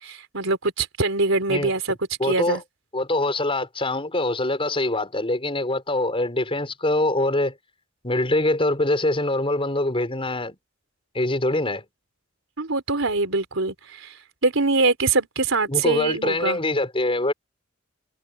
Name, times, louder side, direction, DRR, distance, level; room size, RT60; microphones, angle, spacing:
voice 1, 0.0-2.0 2.2-2.6 12.6-14.1 14.4-16.6, right 3 dB, 80° right, 4.3 m, -23 dB
voice 2, 2.2-2.6 2.9-7.5 8.0-10.6 11.1-11.8 15.7-17.3, left 2 dB, 30° left, 5.1 m, -24 dB
head